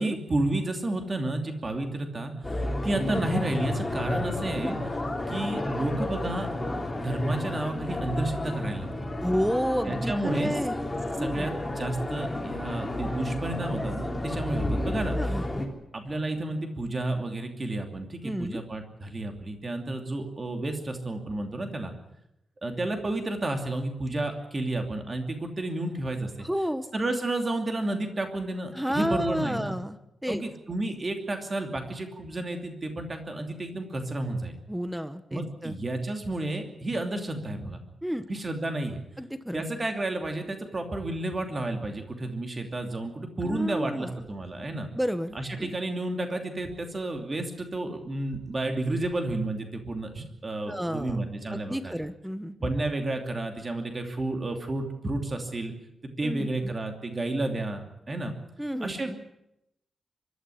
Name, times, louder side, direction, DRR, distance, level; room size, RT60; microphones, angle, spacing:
voice 1, 0.0-4.8 5.3-6.5 6.9-9.1 9.9-10.5 11.2-15.4 15.9-21.9 22.6-26.3 26.9-29.7 30.3-34.5 35.3-37.8 38.3-39.0 39.5-44.9 45.3-51.9 52.6-55.7 56.2-57.8 58.1-58.3 58.8-59.2, right 2 dB, 25° right, 4 dB, 2.8 m, -31 dB
sound 1, 2.4-15.7, left 1 dB, 15° left, 3.1 m, -31 dB
voice 2, 9.2-10.8 11.2-11.5 15.2-15.6 18.2-18.6 26.4-26.8 28.7-30.0 30.2-30.4 34.7-35.8 38.0-38.3 39.2-39.6 43.4-44.1 44.9-45.7 50.7-51.2 51.5-52.7 56.2-56.5 58.6-59.0, equal, ahead, 11 dB, 1.1 m, -31 dB
sound 2, 44.1-44.6 45.3-45.7 45.9-46.1 46.5-47.6 48.0-48.7 49.0-49.3 50.1-50.5 51.0-51.4, right 3 dB, 75° right, 5.0 m, -49 dB
24.0 x 12.5 x 9.8 m, 0.85 s
wide cardioid pair, 175°, 0 cm